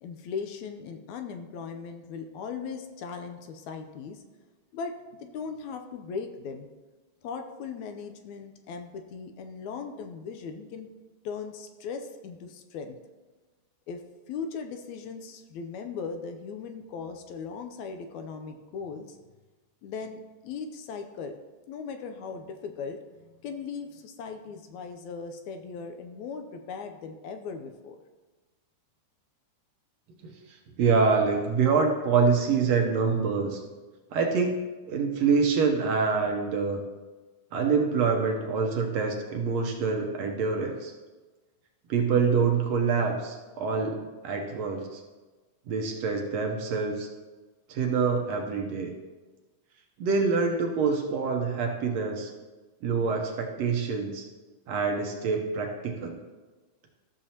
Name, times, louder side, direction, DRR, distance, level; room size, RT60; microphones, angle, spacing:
voice 1, 0.0-4.2 4.7-4.9 5.2-6.7 7.2-10.9 11.2-13.0 13.9-14.0 14.3-19.2 19.8-21.4 21.7-28.0, left 5 dB, 80° left, 6 dB, 1.9 m, -38 dB
voice 2, 30.2-33.6 34.1-34.6 34.9-36.8 37.5-40.9 41.9-45.0 45.7-47.1 47.7-48.9 50.0-52.3 52.8-54.2 54.7-56.2, right 5 dB, 70° right, 2 dB, 1.8 m, -26 dB
14.0 x 6.7 x 2.8 m, 1.2 s
omnidirectional pair, 3.5 m